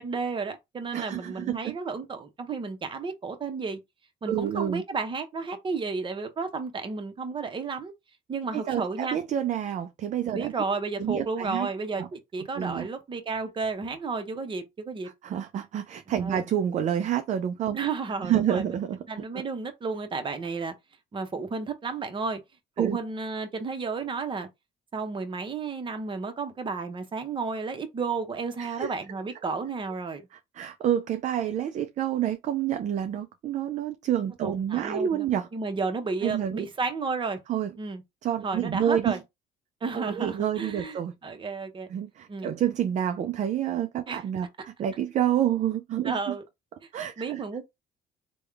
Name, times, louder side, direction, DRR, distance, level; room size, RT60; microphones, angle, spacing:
voice 1, 0.0-3.8 4.2-7.9 8.3-9.2 10.3-15.1 16.2-16.4 17.7-18.6 19.1-20.7 21.1-22.4 22.8-24.5 24.9-30.2 34.4-35.3 35.5-37.4 37.8-38.0 38.4-39.2 39.8-41.0 41.2-41.9 42.3-42.5 44.1-44.2 46.0-46.4 47.2-47.6, right 4 dB, 30° right, 0.8 m, -32 dB
voice 2, 0.9-1.8 4.3-4.8 8.5-10.5 11.0-11.7 12.0-12.1 12.6-12.9 15.2-17.8 18.2-19.4 22.8-23.0 28.6-28.9 30.3-35.5 36.2-36.7 37.5-37.7 38.2-39.2 39.9-41.1 41.9-46.3 46.9-47.4, right 10 dB, 45° right, 0.4 m, -28 dB
3.5 x 2.2 x 3.3 m
cardioid pair, 110°, 17 cm